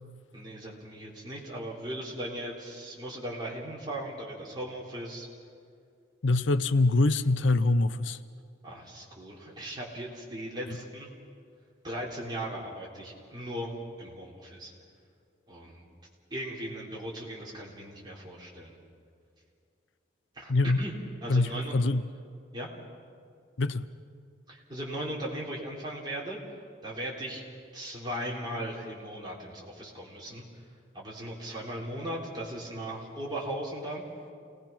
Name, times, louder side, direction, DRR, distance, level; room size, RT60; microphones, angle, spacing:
voice 1, 0.3-5.3 8.6-11.1 11.8-14.7 15.5-15.9 16.3-18.8 20.3-20.5 20.8-20.9 21.2-21.7 22.5-22.7 24.5-26.4 26.8-27.4 27.7-30.6 30.9-34.1, right 1 dB, 20° right, -4 dB, 3.9 m, -38 dB
voice 2, 6.2-8.2 10.7-10.8 20.5-20.9 21.3-22.0 23.6-23.9, left 2 dB, 75° left, 13 dB, 0.6 m, -24 dB
28.5 x 19.5 x 6.0 m, 2.3 s
head